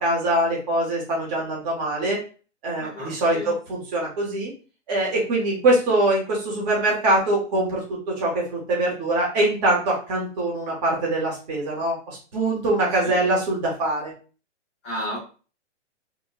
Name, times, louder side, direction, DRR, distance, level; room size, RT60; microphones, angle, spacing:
voice 1, 0.0-2.2 2.6-4.5 4.9-14.1, right 1 dB, 35° right, -3 dB, 0.9 m, -23 dB
voice 2, 2.8-3.5 13.0-13.3 14.8-15.2, left 1 dB, ahead, -18 dB, 0.3 m, -32 dB
2.9 x 2.1 x 2.7 m, 0.37 s
hypercardioid pair, 150°, 37 cm